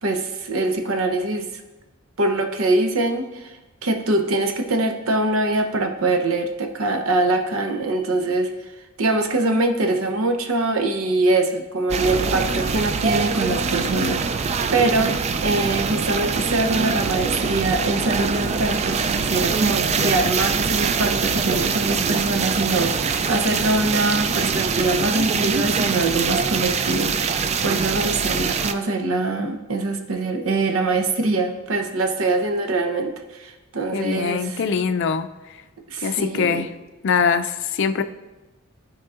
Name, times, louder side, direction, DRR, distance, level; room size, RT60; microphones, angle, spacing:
voice 1, 0.0-1.5 2.2-3.5 3.8-8.5 9.0-34.6 35.9-36.7, right 2 dB, 70° right, 5 dB, 0.8 m, -23 dB
sound 1, 11.9-28.7, right 5 dB, 30° right, 0.3 m, -23 dB
voice 2, 33.9-35.3 36.0-36.7 37.0-38.0, left 6 dB, 60° left, 9 dB, 0.4 m, -22 dB
13.0 x 4.6 x 2.4 m, 1.1 s
head